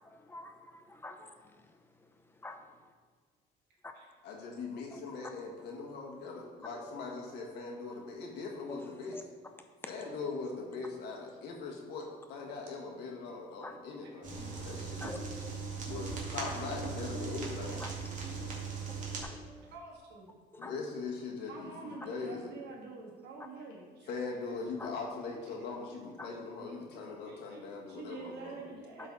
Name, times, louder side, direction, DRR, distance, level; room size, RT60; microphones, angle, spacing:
voice 1, 0.1-1.3 2.4-2.6 3.8-3.9 4.9-5.0 8.7-8.8 9.1-9.2 13.6-13.8 14.4-15.5 17.8-17.9 18.6-18.8 19.2-19.7 20.5-20.7 24.8-24.9 26.2-26.3, left 2 dB, 15° left, 6 dB, 0.7 m, -47 dB
voice 2, 4.2-9.3 9.9-15.1 15.9-17.8 20.6-22.5 24.1-28.6, left 4 dB, 85° left, -1 dB, 1.7 m, -41 dB
sound 1, 14.2-19.2, right 4 dB, 50° right, 2.0 m, -39 dB
voice 3, 19.7-20.3 21.2-24.1 24.4-24.5 25.5-25.6 27.2-29.1, right 4 dB, 80° right, -2 dB, 2.0 m, -48 dB
11.5 x 4.2 x 4.1 m, 1.5 s
cardioid pair, 110°, 17 cm